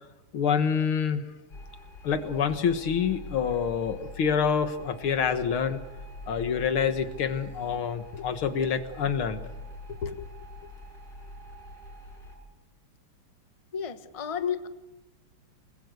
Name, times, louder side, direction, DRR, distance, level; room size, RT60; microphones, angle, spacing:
voice 1, 0.3-1.2 2.0-5.8 6.3-9.4 10.0-10.3, left 7 dB, 85° left, 10 dB, 2.3 m, -27 dB
sound 1, 1.5-12.4, left 2 dB, 50° left, 6.9 m, -44 dB
voice 2, 13.7-14.7, left 7 dB, 20° left, 10 dB, 0.9 m, -31 dB
29.5 x 20.5 x 6.6 m, 1.1 s
omnidirectional pair, 2.3 m